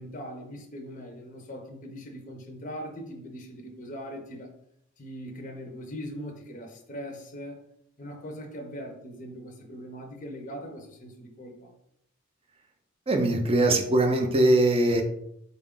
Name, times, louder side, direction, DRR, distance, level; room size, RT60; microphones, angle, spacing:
voice 1, 0.0-4.5 5.0-7.6 8.0-11.7, equal, 40° left, 2 dB, 0.5 m, -40 dB
voice 2, 13.1-15.0, right 1 dB, 30° right, 5 dB, 0.5 m, -21 dB
3.9 x 2.3 x 3.6 m, 0.76 s
head